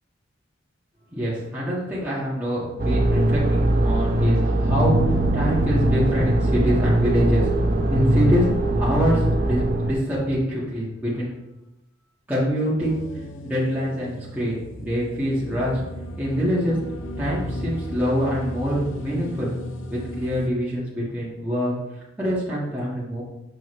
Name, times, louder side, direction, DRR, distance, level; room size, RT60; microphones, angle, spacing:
voice 1, 1.1-5.0 5.3-7.5 7.9-8.4 8.8-11.3 12.3-13.0 13.4-15.8 16.2-16.8 17.2-19.5 19.9-21.8 22.2-23.2, equal, 10° right, -8 dB, 1.8 m, -25 dB
sound 1, 2.8-9.9, right 1 dB, 50° right, 0.8 m, -21 dB
sound 2, 12.8-20.5, equal, 80° left, 0.6 m, -35 dB
6.6 x 6.1 x 3.3 m, 0.94 s
head